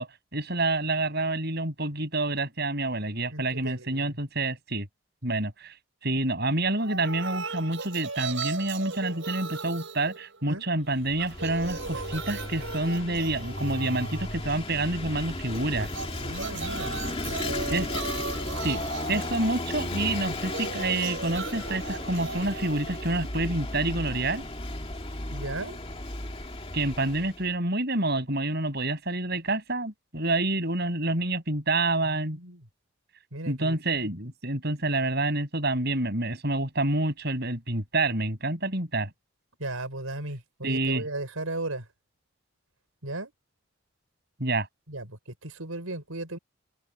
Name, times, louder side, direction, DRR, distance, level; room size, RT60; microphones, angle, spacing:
voice 1, 0.0-4.9 5.2-5.7 6.0-15.9 17.7-17.9 18.6-18.8 19.1-24.5 26.7-32.4 33.5-39.1 40.6-41.0 44.4-44.7, right 2 dB, 50° right, 7.9 m, -28 dB
voice 2, 3.3-4.2 6.4-6.5 10.4-10.7 16.2-17.9 25.3-25.8 32.3-32.7 33.3-33.8 39.6-41.9 43.0-43.3 44.9-46.4, right 2 dB, 85° right, 5.5 m, -36 dB
sound 1, 6.8-10.8 11.1-14.8 15.8-23.8, right 4 dB, 65° right, 5.2 m, -38 dB
Vehicle / Engine, 10.9-27.5, left 2 dB, 25° left, 2.5 m, -35 dB
head